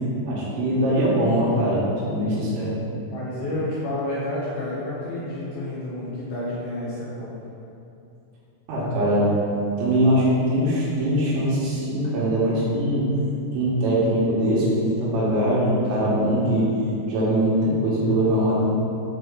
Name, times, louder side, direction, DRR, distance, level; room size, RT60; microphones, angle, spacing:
voice 1, 0.3-2.8 8.7-9.3 9.8-13.1 13.5-16.7 17.1-18.5, right 1 dB, 85° right, -7 dB, 3.7 m, -22 dB
voice 2, 3.1-7.3, left 1 dB, 75° left, -7 dB, 2.3 m, -30 dB
8.4 x 3.5 x 3.7 m, 2.7 s
omnidirectional pair, 5.2 m